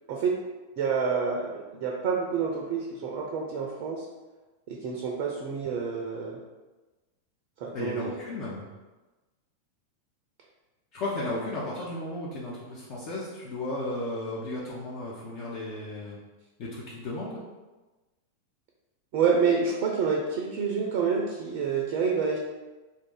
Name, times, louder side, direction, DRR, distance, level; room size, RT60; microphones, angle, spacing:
voice 1, 0.8-4.1 4.7-6.4 7.6-8.1 19.1-22.4, right 5 dB, 45° right, 0 dB, 0.5 m, -28 dB
voice 2, 7.7-8.7 10.9-16.2 16.6-17.4, left 2 dB, 40° left, -6 dB, 0.6 m, -34 dB
2.6 x 2.6 x 3.7 m, 1.2 s
figure-of-eight pair, 90°, 0 cm